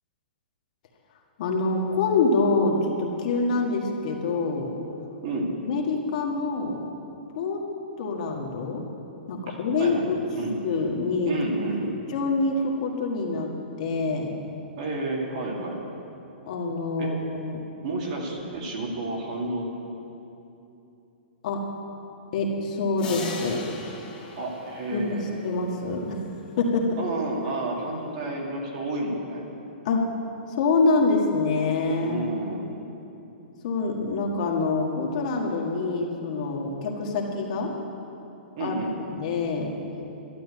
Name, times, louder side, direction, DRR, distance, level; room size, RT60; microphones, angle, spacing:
voice 1, 1.4-4.7 5.6-6.8 7.3-7.6 8.0-8.8 9.3-10.2 10.6-11.4 12.1-13.5 13.8-14.3 16.5-17.6 21.4-21.6 22.3-23.6 24.9-26.2 26.6-26.9 29.9-30.0 30.6-32.2 33.6-37.7 38.6-38.7 39.1-39.7, left 3 dB, 40° left, 0 dB, 1.7 m, -25 dB
voice 2, 9.5-10.6 11.3-11.9 14.8-15.8 17.0-17.1 17.8-19.6 24.0-25.5 27.0-29.5 32.0-32.7 38.6-38.9, right 2 dB, 40° right, -1 dB, 2.3 m, -31 dB
sound 1, 23.0-25.7, left 2 dB, 15° left, 3.2 m, -37 dB
12.0 x 11.5 x 8.3 m, 2.8 s
hypercardioid pair, 175°, 6 cm